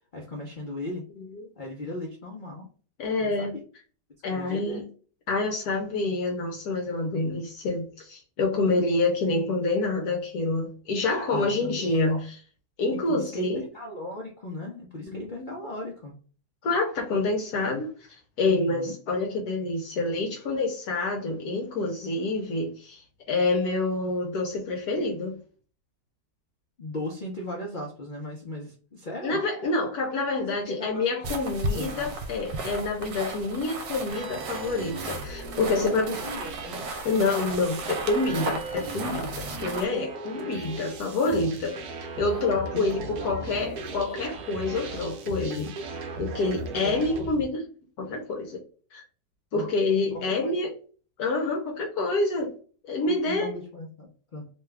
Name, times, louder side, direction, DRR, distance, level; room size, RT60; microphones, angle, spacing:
voice 1, 0.1-1.0 1.6-2.7 3.2-3.6 4.3-4.8 11.3-12.2 12.9-16.2 18.4-18.9 26.8-29.4 30.3-32.1 35.6-36.8 37.6-37.7 41.4-41.6 42.9-43.3 47.0-47.1 49.5-49.7 50.1-50.5 53.0-54.5, left 1 dB, 85° left, -1 dB, 0.4 m, -37 dB
voice 2, 3.0-3.6 4.2-4.9 5.3-12.2 12.8-13.6 15.0-15.6 16.6-17.9 18.4-25.4 29.2-36.1 37.0-39.3 39.6-41.8 42.2-45.7 46.2-47.6 48.0-48.6 48.9-49.0 49.5-50.7 51.2-52.5 52.9-53.5, left 3 dB, 70° left, 1 dB, 1.2 m, -27 dB
sound 1, 31.2-39.9, right 2 dB, 90° right, 1.3 m, -35 dB
sound 2, 34.1-47.4, right 3 dB, 70° right, 1.1 m, -38 dB
3.1 x 2.3 x 3.2 m, 0.40 s
omnidirectional pair, 1.9 m